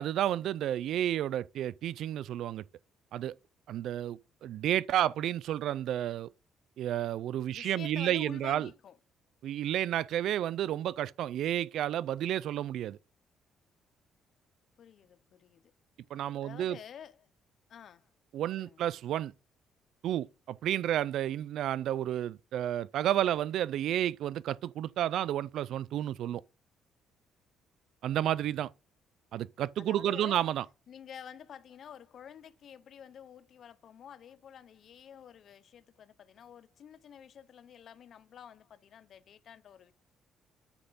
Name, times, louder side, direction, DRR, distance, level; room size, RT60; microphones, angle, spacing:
voice 1, 0.0-2.6 3.1-3.4 3.7-6.3 6.8-8.7 9.4-13.0 16.1-16.8 18.3-19.3 20.0-26.4 28.0-28.7 29.3-30.6, right 11 dB, 65° right, 0.3 m, -31 dB
voice 2, 7.5-9.0 14.8-15.7 16.4-17.3 17.7-18.1 18.6-18.8 29.8-30.4 30.9-39.9, left 8 dB, 50° left, 0.6 m, -50 dB
9.8 x 5.8 x 4.0 m
cardioid pair, 140°, 0 cm